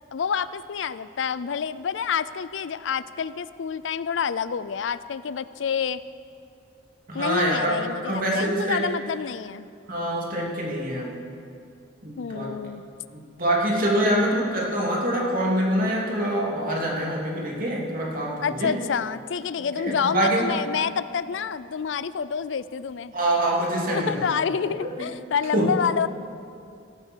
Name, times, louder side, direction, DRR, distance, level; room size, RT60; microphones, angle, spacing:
voice 1, 0.1-6.0 7.1-9.7 12.2-12.8 14.0-14.3 18.4-23.1 23.9-26.1, left 6 dB, 75° left, 16 dB, 0.4 m, -28 dB
voice 2, 7.1-8.9 9.9-11.1 12.0-12.5 13.1-18.7 19.6-20.5 23.1-24.3 24.8-24.9 25.5-25.7, right 1 dB, 50° right, -3 dB, 3.0 m, -25 dB
17.0 x 14.0 x 4.6 m, 2.4 s
head